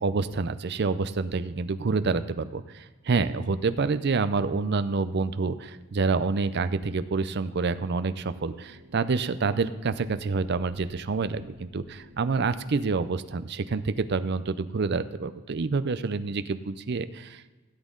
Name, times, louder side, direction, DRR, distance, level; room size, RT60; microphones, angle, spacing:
voice 1, 0.0-17.6, right 4 dB, 50° right, 12 dB, 0.5 m, -28 dB
sound 1, 3.6-12.9, equal, 90° right, 1.7 m, -54 dB
16.5 x 8.3 x 3.8 m, 1.2 s
head